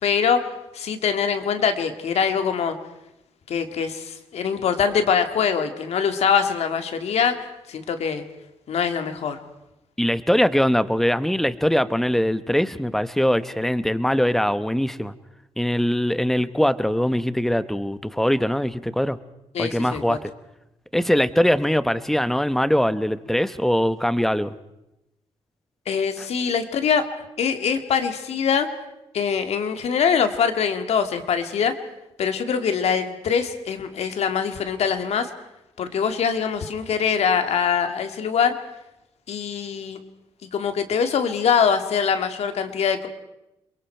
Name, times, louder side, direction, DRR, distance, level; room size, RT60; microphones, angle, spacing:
voice 1, 0.0-0.5 0.7-2.8 3.5-7.4 7.7-8.2 8.7-9.4 16.4-16.5 19.5-20.2 25.9-27.1 27.4-28.7 29.1-31.7 32.2-35.3 35.8-38.5 39.3-40.0 40.4-43.1, left 7 dB, 75° left, 7 dB, 2.0 m, -23 dB
voice 2, 10.0-15.1 15.6-19.2 19.6-20.3 20.9-24.5 26.2-26.3, equal, 5° left, 14 dB, 0.9 m, -22 dB
28.5 x 22.5 x 4.5 m, 0.90 s
cardioid pair, 100°, 11 cm